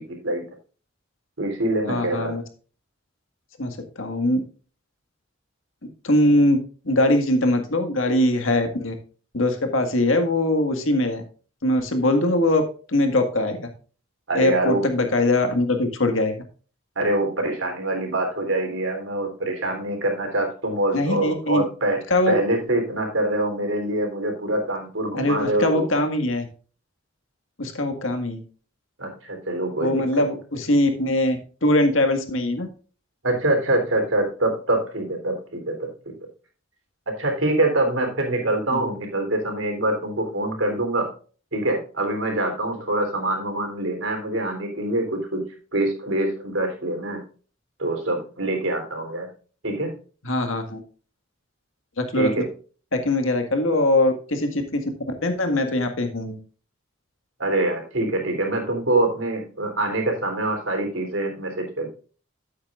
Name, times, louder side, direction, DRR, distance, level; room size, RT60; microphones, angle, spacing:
voice 1, 1.4-2.3 14.3-14.9 17.0-22.0 22.3-25.8 29.0-30.0 33.2-36.1 37.2-41.1 41.5-45.4 45.7-47.2 47.8-49.3 49.6-50.0 52.2-52.5 57.4-61.9, right 1 dB, 80° right, 3 dB, 3.5 m, -25 dB
voice 2, 1.9-2.4 3.6-4.4 6.0-6.6 6.9-8.9 9.3-11.2 11.6-12.6 12.9-13.7 14.3-16.3 20.9-21.6 22.1-22.4 25.1-26.5 27.6-28.4 29.8-32.7 38.7-38.9 50.2-50.8 52.0-52.5 52.9-54.8 55.2-56.4, left 1 dB, 90° left, 6 dB, 1.9 m, -22 dB
12.0 x 8.6 x 2.5 m, 0.38 s
head